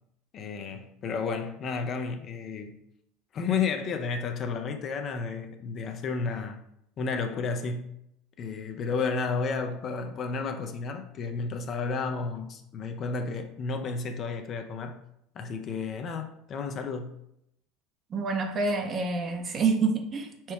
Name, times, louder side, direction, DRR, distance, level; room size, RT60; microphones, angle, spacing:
voice 1, 0.3-2.8 3.3-6.6 7.0-7.9 8.4-15.0 15.4-17.2, left 5 dB, 45° left, 0.5 m, -32 dB
voice 2, 18.1-20.5, right 4 dB, 35° right, 0.6 m, -27 dB
4.4 x 2.2 x 4.5 m
hypercardioid pair, 75°, 0 cm